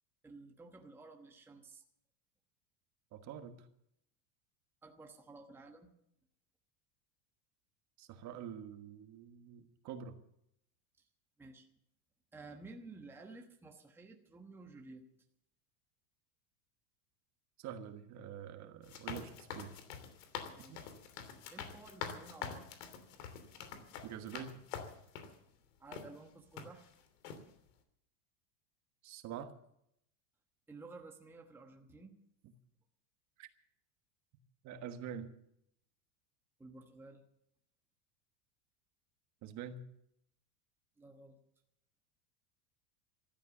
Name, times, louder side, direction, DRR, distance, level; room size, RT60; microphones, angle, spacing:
voice 1, 0.2-1.8 4.8-5.9 11.0-11.1 11.4-11.7 12.3-15.1 20.5-20.9 21.5-22.7 25.8-26.9 30.7-32.1 36.6-37.2 41.0-41.4, right 3 dB, 5° right, 2 dB, 1.1 m, -53 dB
voice 2, 3.1-3.7 8.0-10.2 17.6-19.8 20.7-20.8 24.0-24.6 29.0-29.5 33.4-33.5 34.6-35.3 39.4-39.8, right 8 dB, 35° right, 8 dB, 1.4 m, -46 dB
sound 1, 18.8-25.4 25.9-26.1 26.6-26.9 27.2-27.4, left 7 dB, 85° left, 3.1 m, -46 dB
15.0 x 12.5 x 7.1 m, 0.75 s
supercardioid pair, 160°, 47 cm